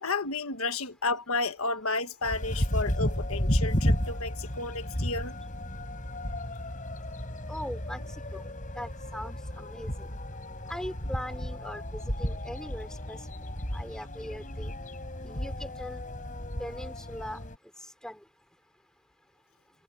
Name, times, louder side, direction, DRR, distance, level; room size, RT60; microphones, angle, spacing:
voice 1, 0.0-5.3, left 3 dB, 85° left, 1.4 m, -32 dB
sound 1, 2.2-17.6, equal, 40° left, 5.9 m, -33 dB
voice 2, 7.5-8.0 8.3-8.4 8.7-10.1 10.7-13.2 13.7-14.7 15.2-16.0 16.6-17.4 18.0-18.2, equal, 5° left, 4.4 m, -40 dB
head